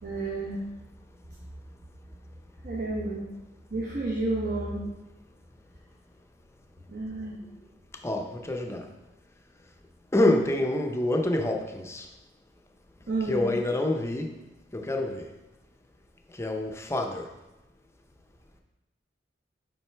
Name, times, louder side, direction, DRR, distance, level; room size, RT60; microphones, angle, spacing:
voice 1, 0.0-0.6 2.6-3.2 3.7-4.9 6.9-7.4 13.1-13.5, right 2 dB, 55° right, -5 dB, 1.1 m, -30 dB
voice 2, 8.0-8.9 10.1-12.1 13.3-14.3 14.7-15.3 16.4-17.3, left 1 dB, 15° left, 3 dB, 0.6 m, -27 dB
7.5 x 5.1 x 3.3 m, 0.99 s
head